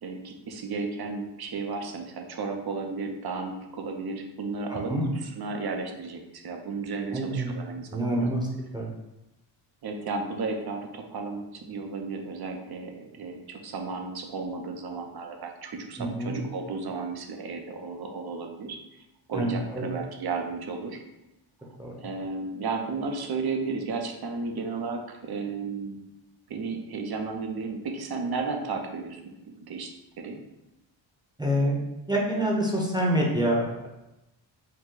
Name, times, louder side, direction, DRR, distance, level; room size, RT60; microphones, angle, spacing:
voice 1, 0.0-8.3 9.8-19.0 19.3-21.0 22.0-26.0 26.5-30.4, right 4 dB, 50° right, 4 dB, 0.7 m, -34 dB
voice 2, 4.7-5.0 7.1-7.5 7.9-8.5 8.7-8.9 16.0-16.4 19.3-19.8 21.8-21.9 31.4-31.8 32.1-33.9, right 1 dB, 10° right, -3 dB, 0.8 m, -26 dB
5.5 x 2.2 x 3.8 m, 0.93 s
wide cardioid pair, 120°, 47 cm